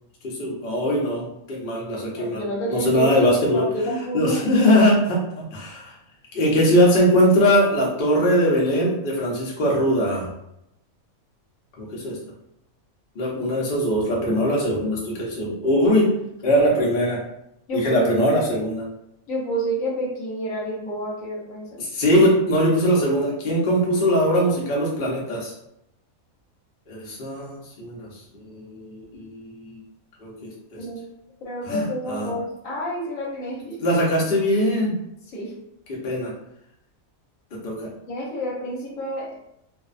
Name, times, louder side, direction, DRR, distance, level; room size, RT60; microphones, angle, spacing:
voice 1, 0.2-2.4 2.7-3.6 4.1-5.9 6.3-10.3 11.8-12.2 13.1-16.1 16.4-17.2 17.7-18.8 21.8-25.5 26.9-29.8 30.2-30.8 31.6-32.3 33.8-34.9 35.9-36.3 37.5-37.9, equal, 50° left, -4 dB, 0.7 m, -21 dB
voice 2, 2.0-4.5 17.7-18.3 19.3-21.8 30.8-31.0 31.4-33.8 35.3-35.5 38.1-39.4, right 1 dB, 70° left, -4 dB, 1.1 m, -29 dB
2.5 x 2.1 x 2.4 m, 0.81 s
omnidirectional pair, 1.5 m